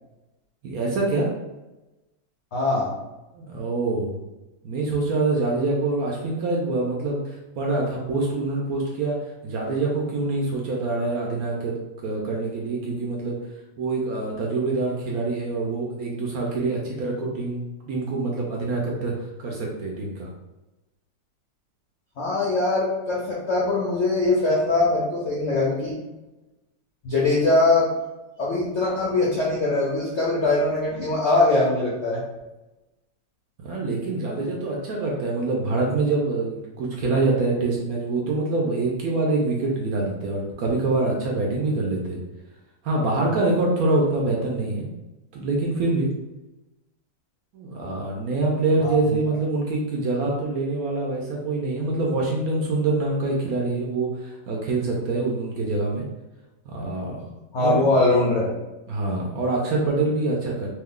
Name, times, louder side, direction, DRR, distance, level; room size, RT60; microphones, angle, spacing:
voice 1, 0.6-1.3 3.3-4.2 4.6-9.2 9.4-11.8 12.0-13.4 13.8-19.1 19.4-20.3 33.6-42.2 42.8-44.9 45.3-46.1 47.5-56.1 56.7-57.8 58.9-60.7, right 3 dB, 70° right, -2 dB, 0.9 m, -25 dB
voice 2, 2.5-2.9 22.2-25.9 27.0-27.9 28.4-32.2 48.8-49.0 57.5-58.5, left 2 dB, 70° left, -5 dB, 0.6 m, -22 dB
3.0 x 2.2 x 3.6 m, 1.0 s
omnidirectional pair, 1.9 m